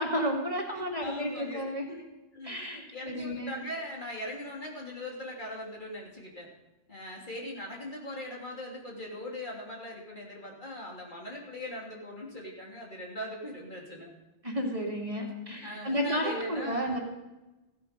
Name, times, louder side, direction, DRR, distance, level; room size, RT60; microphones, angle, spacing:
voice 1, 0.0-1.8 2.4-3.5 14.4-17.0, equal, 30° right, -1 dB, 2.4 m, -32 dB
voice 2, 0.7-2.0 2.3-2.6 2.9-6.5 6.9-14.1 15.6-17.0, left 1 dB, 50° left, -3 dB, 3.3 m, -40 dB
16.0 x 13.0 x 5.3 m, 1.1 s
omnidirectional pair, 1.1 m